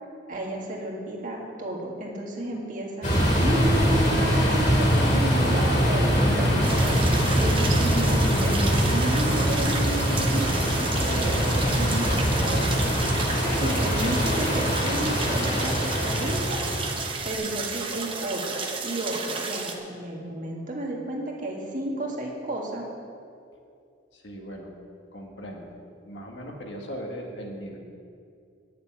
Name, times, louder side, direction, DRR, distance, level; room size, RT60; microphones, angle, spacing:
voice 1, 0.3-3.1 3.4-7.0 7.4-12.9 13.3-16.6 17.2-22.9, right 1 dB, 45° right, -2 dB, 2.0 m, -32 dB
sound 1, 3.0-17.3, equal, 40° left, 2.2 m, -23 dB
sound 2, 6.6-19.7, right 4 dB, 30° right, 1.0 m, -33 dB
voice 2, 24.1-24.7 25.1-25.8 26.1-27.8, equal, 70° left, 0 dB, 1.8 m, -38 dB
10.0 x 6.8 x 8.6 m, 2.4 s
head